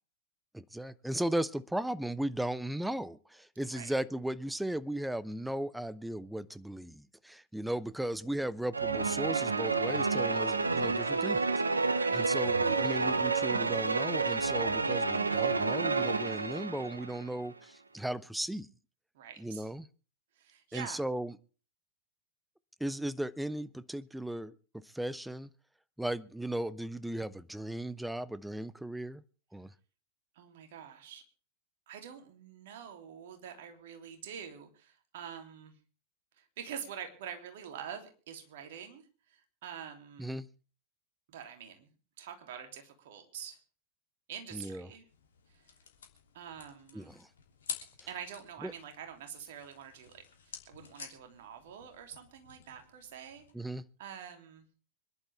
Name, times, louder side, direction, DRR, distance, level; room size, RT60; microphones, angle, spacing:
voice 1, 0.5-11.5 12.1-18.7 19.4-19.9 20.7-21.4 22.8-25.5 26.0-29.2 29.5-29.7 40.2-40.5 44.5-44.9 46.9-47.3 48.6-48.7 53.5-53.8, right 1 dB, 5° right, 17 dB, 0.8 m, -36 dB
sound 1, 8.7-17.3, right 4 dB, 80° right, 1.1 m, -30 dB
voice 2, 11.8-12.2 19.1-19.7 20.3-21.0 30.3-31.2 31.9-35.8 36.4-40.4 41.3-43.6 44.3-45.0 45.5-45.6 46.3-47.1 48.1-53.4 54.0-54.7, right 8 dB, 55° right, 5 dB, 3.1 m, -46 dB
sound 2, 45.1-53.5, left 6 dB, 65° left, 3.1 m, -49 dB
25.5 x 11.5 x 3.5 m, 0.38 s
figure-of-eight pair, 90°, 0 cm